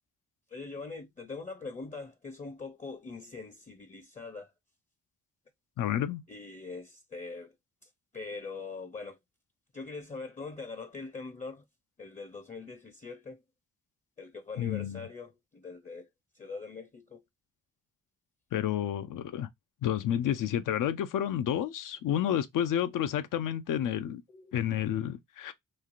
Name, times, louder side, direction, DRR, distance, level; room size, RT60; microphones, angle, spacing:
voice 1, 0.5-4.5 6.3-7.5 7.8-9.2 9.7-11.6 12.0-13.4 14.2-16.1 16.3-17.2 24.3-24.5, left 4 dB, 25° left, 0.5 m, -42 dB
voice 2, 5.8-6.2 14.6-15.0 18.5-19.5 19.8-24.2 24.5-25.5, left 10 dB, 90° left, 0.5 m, -30 dB
3.1 x 2.4 x 2.4 m
cardioid pair, 85°, 31 cm